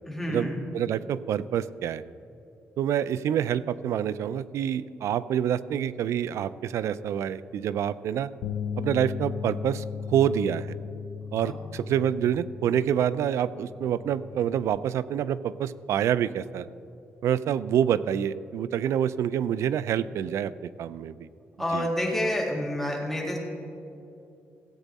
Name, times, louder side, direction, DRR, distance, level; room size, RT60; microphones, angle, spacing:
voice 1, 0.1-0.6 11.4-11.7 21.6-23.4, left 1 dB, 5° left, -2 dB, 1.9 m, -29 dB
voice 2, 0.7-2.0 2.8-8.3 8.8-10.7 11.3-16.7 17.2-21.3 21.7-21.9, right 9 dB, 75° right, 16 dB, 0.3 m, -27 dB
Bass guitar, 8.4-14.7, left 7 dB, 80° left, 0.5 m, -37 dB
16.5 x 8.2 x 4.1 m, 2.7 s
cardioid pair, 135°, 5 cm